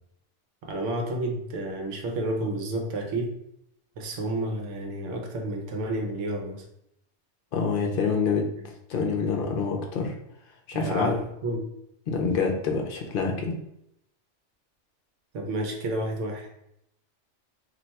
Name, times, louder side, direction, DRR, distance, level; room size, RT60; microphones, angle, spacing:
voice 1, 0.6-3.3 4.0-6.6 10.7-11.6 15.3-16.5, right 1 dB, 85° right, 2 dB, 1.1 m, -30 dB
voice 2, 7.5-8.5 8.9-10.2 10.7-11.1 12.1-13.5, left 5 dB, 60° left, 2 dB, 0.7 m, -26 dB
2.6 x 2.2 x 4.0 m, 0.78 s
omnidirectional pair, 1.2 m